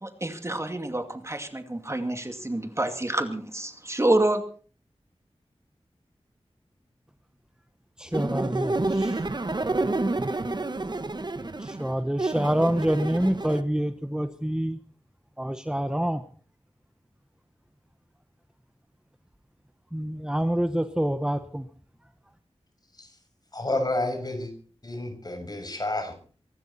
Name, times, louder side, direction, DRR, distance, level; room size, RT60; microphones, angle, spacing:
voice 1, 0.0-4.4, right 1 dB, 25° right, 6 dB, 2.4 m, -27 dB
voice 2, 8.0-9.2 11.6-14.8 15.4-16.2 19.9-21.7, right 1 dB, 5° right, 8 dB, 1.2 m, -27 dB
sound 1, 8.1-13.6, right 2 dB, 45° right, 1.4 m, -29 dB
voice 3, 23.5-24.5 24.8-26.1, left 2 dB, 40° left, 5 dB, 6.4 m, -30 dB
24.5 x 13.0 x 4.3 m, 0.41 s
wide cardioid pair, 80°, 11 cm